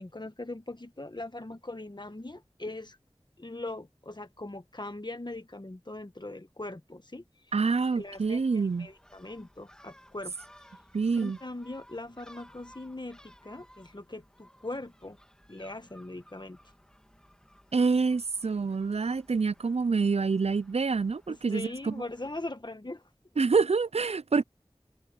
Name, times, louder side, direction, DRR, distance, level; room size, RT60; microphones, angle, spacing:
voice 1, 0.0-3.0 3.4-7.2 7.9-8.4 8.8-10.3 11.2-15.2 15.5-16.6 21.3-23.0, left 2 dB, 45° left, 1.4 m, -40 dB
Gull seagull, 7.5-22.5, equal, 5° left, 2.3 m, -58 dB
voice 2, 7.5-8.9 10.9-11.4 17.7-21.9 23.4-24.4, right 4 dB, 80° right, 0.4 m, -26 dB
wide cardioid pair, 40°, 11 cm